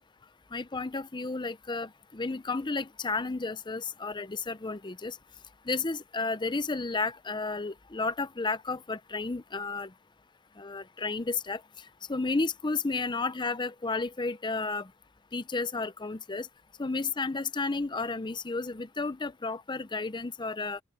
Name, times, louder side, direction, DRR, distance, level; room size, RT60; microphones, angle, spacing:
voice 1, 0.5-5.2 5.7-9.9 10.6-11.6 12.1-14.9 15.3-16.5 16.8-20.8, left 3 dB, 20° left, 0.6 m, -32 dB
open air
head